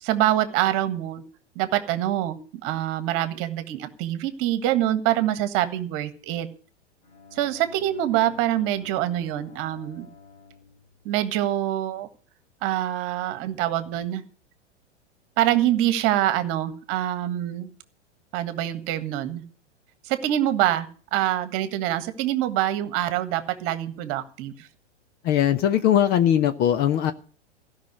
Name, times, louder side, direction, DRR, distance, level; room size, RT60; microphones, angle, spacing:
voice 1, 0.0-1.2 1.5-6.5 7.3-10.1 11.0-12.1 12.6-14.2 15.4-17.7 18.3-19.4 20.0-24.7, right 13 dB, 35° right, 11 dB, 1.6 m, -25 dB
Bowed string instrument, 7.0-11.9, left 4 dB, 50° left, 4.4 m, -50 dB
voice 2, 25.2-27.1, left 10 dB, 30° left, 11 dB, 0.7 m, -20 dB
16.0 x 5.7 x 9.6 m, 0.41 s
figure-of-eight pair, 100°, 35 cm